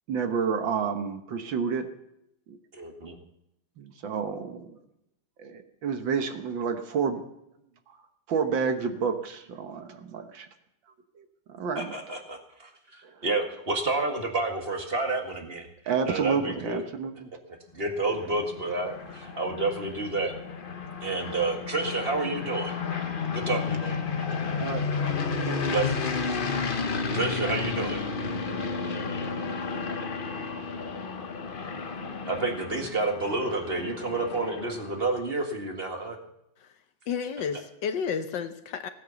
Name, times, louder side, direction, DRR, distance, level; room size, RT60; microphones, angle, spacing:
voice 1, 0.1-1.9 2.5-2.6 3.8-4.8 5.4-7.2 8.3-10.5 11.2-11.9 15.9-17.3 18.3-18.4 24.6-24.8, right 6 dB, 70° right, 7 dB, 1.9 m, -29 dB
voice 2, 2.7-3.1 11.7-15.7 16.0-16.8 17.5-20.3 21.0-22.8 23.3-23.9 25.6-26.1 27.1-28.0 32.2-36.2 37.5-37.6, right 3 dB, 30° right, 3 dB, 1.9 m, -30 dB
sound 1, 17.9-35.1, left 5 dB, 40° left, 0.7 m, -32 dB
voice 3, 37.1-38.9, left 6 dB, 65° left, 9 dB, 1.4 m, -31 dB
16.5 x 9.3 x 7.0 m, 0.80 s
omnidirectional pair, 2.2 m